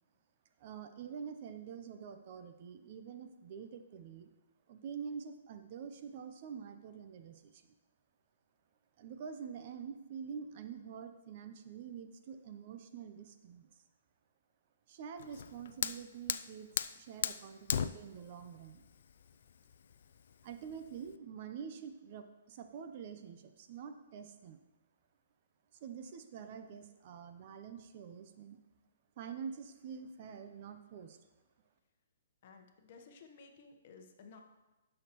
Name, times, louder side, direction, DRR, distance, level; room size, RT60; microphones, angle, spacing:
voice 1, 0.6-4.3 4.7-7.6 9.0-13.7 14.9-16.7 16.9-18.9 20.4-24.6 25.8-28.6 29.2-31.2, right 7 dB, 40° right, 8 dB, 0.6 m, -46 dB
Fire, 15.2-21.2, left 8 dB, 65° left, 0.4 m, -39 dB
voice 2, 32.4-34.4, left 4 dB, 45° left, 4 dB, 1.1 m, -56 dB
13.0 x 6.5 x 3.0 m, 1.1 s
hypercardioid pair, 160°, 0 cm